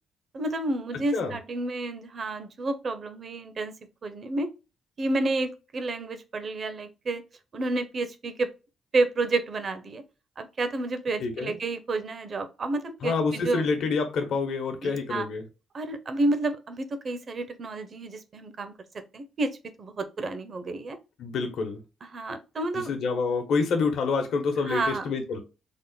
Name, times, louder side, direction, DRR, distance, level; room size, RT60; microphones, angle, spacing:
voice 1, 0.3-3.7 4.0-4.5 5.0-7.2 7.5-8.5 8.9-10.0 10.4-13.7 14.8-15.3 15.7-18.7 19.1-19.5 19.8-21.0 22.1-22.9 24.6-25.0, right 2 dB, 45° right, 0.7 m, -30 dB
voice 2, 11.2-11.6 13.0-15.4 21.2-21.8 22.9-25.4, left 4 dB, 70° left, 0.9 m, -27 dB
3.6 x 2.1 x 3.9 m
cardioid pair, 90°, 0 cm